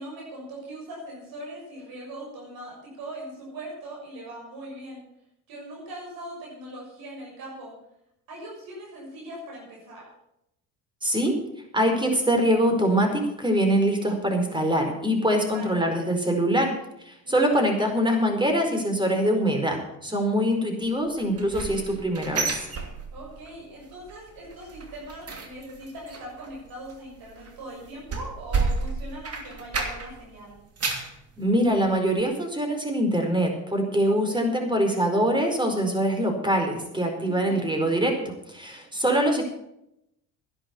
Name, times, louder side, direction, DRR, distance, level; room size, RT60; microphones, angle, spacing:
voice 1, 0.0-5.0 5.5-7.7 8.3-10.1 15.5-15.8 17.2-17.6 23.1-30.5 34.1-34.6 37.2-37.6, right 1 dB, 60° right, -3 dB, 6.7 m, -40 dB
voice 2, 11.0-11.3 11.7-16.7 17.0-22.7 31.4-39.4, equal, 10° right, 4 dB, 4.8 m, -24 dB
sound 1, 21.2-23.5 23.8-24.2 24.4-30.2 30.6-31.2 31.7-31.8 32.2-32.3, right 4 dB, 35° right, 2.9 m, -31 dB
11.5 x 10.5 x 7.1 m, 0.81 s
hypercardioid pair, 70°, 39 cm